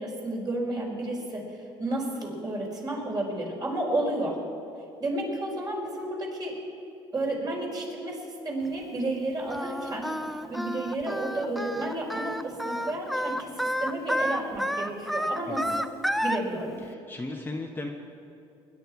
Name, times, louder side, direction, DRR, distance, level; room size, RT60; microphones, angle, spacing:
voice 1, 0.0-4.4 5.0-6.6 7.1-10.1 10.5-16.0 16.2-16.8, right 1 dB, 35° right, -1 dB, 4.2 m, -32 dB
Singing, 9.5-16.4, equal, ahead, 0.6 m, -30 dB
voice 2, 15.5-15.8 16.8-17.9, left 2 dB, 15° left, 1 dB, 1.1 m, -36 dB
20.5 x 10.5 x 4.7 m, 2.7 s
cardioid pair, 90°, 12 cm